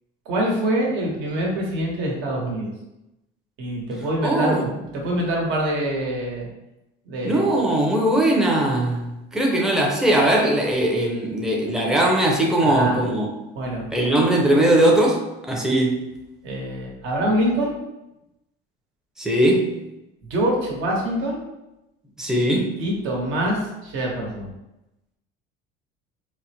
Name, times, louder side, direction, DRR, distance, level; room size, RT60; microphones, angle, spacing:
voice 1, 0.3-2.7 3.6-6.5 7.1-7.5 12.6-13.0 13.5-13.8 16.4-17.8 20.3-21.4 22.8-24.5, right 1 dB, 70° right, -2 dB, 1.1 m, -25 dB
voice 2, 4.2-4.7 7.2-13.3 13.9-16.0 19.2-19.7 22.2-22.8, right 1 dB, 5° right, -1 dB, 0.5 m, -20 dB
3.9 x 2.1 x 2.8 m, 0.93 s
cardioid pair, 145°, 21 cm